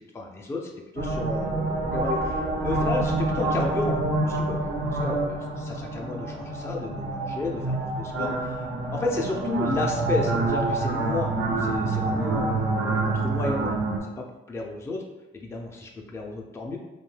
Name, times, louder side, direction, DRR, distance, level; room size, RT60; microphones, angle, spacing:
voice 1, 0.1-4.6 4.9-13.7 14.0-15.0 15.3-16.8, left 2 dB, 15° left, 0 dB, 0.4 m, -32 dB
sound 1, 1.0-14.0, right 2 dB, 75° right, 0.6 m, -27 dB
2.6 x 2.2 x 3.2 m, 1.0 s
cardioid pair, 90°, 20 cm